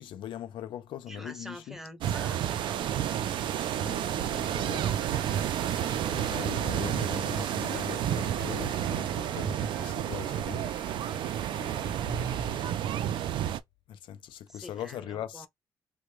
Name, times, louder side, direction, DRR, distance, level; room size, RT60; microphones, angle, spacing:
voice 1, 0.0-1.8 3.5-5.6 6.1-10.7 11.5-12.0 12.6-12.7 13.9-15.5, left 10 dB, 90° left, 0.5 m, -41 dB
voice 2, 1.1-2.9 14.5-15.5, equal, 5° right, 0.6 m, -46 dB
sound 1, 2.0-13.6, right 10 dB, 80° right, 0.4 m, -30 dB
sound 2, 2.3-9.5 9.9-11.2 11.4-11.6 12.0-13.1, right 5 dB, 50° right, 0.7 m, -44 dB
Bowed string instrument, 3.1-12.8, left 5 dB, 35° left, 0.7 m, -51 dB
3.4 x 2.2 x 3.1 m
cardioid pair, 170°, 8 cm